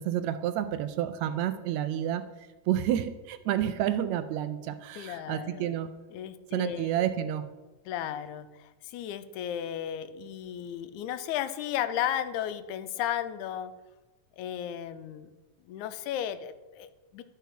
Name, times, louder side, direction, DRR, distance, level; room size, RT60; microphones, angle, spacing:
voice 1, 0.0-2.2 2.7-5.9 6.5-7.5, right 11 dB, 80° right, 11 dB, 1.7 m, -29 dB
voice 2, 5.0-5.8 6.1-7.1 7.9-13.7 14.4-15.3 15.7-17.2, left 10 dB, 85° left, 12 dB, 2.0 m, -34 dB
12.5 x 4.6 x 5.8 m, 1.1 s
omnidirectional pair, 3.4 m